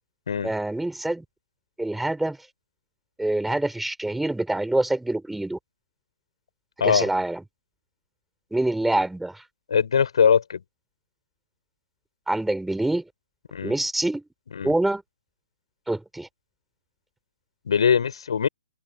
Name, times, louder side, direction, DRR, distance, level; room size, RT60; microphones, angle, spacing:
voice 1, 0.4-1.2 1.8-2.4 3.2-5.6 6.8-7.4 8.5-9.4 12.3-13.0 13.6-14.2 14.6-15.0 15.9-16.3, right 2 dB, 5° right, 6.3 m, -25 dB
voice 2, 9.7-10.6 13.5-13.7 14.5-14.7 17.7-18.5, left 7 dB, 65° left, 7.6 m, -21 dB
open air
figure-of-eight pair, 130°, 3 cm